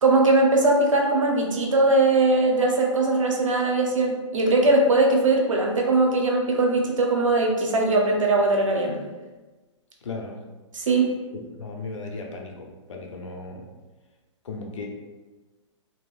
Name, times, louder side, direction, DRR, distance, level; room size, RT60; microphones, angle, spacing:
voice 1, 0.0-9.0 10.7-11.1, right 2 dB, 85° right, 0 dB, 0.7 m, -20 dB
voice 2, 10.0-10.4 11.3-13.7 14.4-14.9, left 3 dB, 75° left, 1 dB, 0.7 m, -36 dB
3.0 x 2.8 x 2.3 m, 1.2 s
hypercardioid pair, 130°, 16 cm